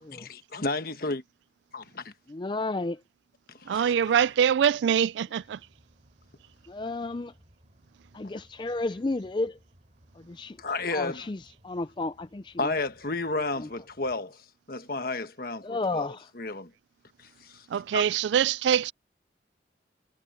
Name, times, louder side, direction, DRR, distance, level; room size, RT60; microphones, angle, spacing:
voice 1, 0.1-1.2 1.7-2.1 3.6-3.9 10.6-11.3 12.6-16.7 17.2-17.7 17.9-18.0, left 3 dB, 55° left, 1.3 m, -32 dB
voice 2, 2.3-3.0 6.7-7.3 8.1-9.6 10.1-10.6 10.9-12.8 13.6-13.7 15.6-16.3, left 2 dB, 25° left, 0.4 m, -32 dB
voice 3, 3.7-5.6 17.7-18.9, right 8 dB, 75° right, 0.3 m, -24 dB
sound 1, 5.4-14.2, equal, 35° right, 5.5 m, -61 dB
head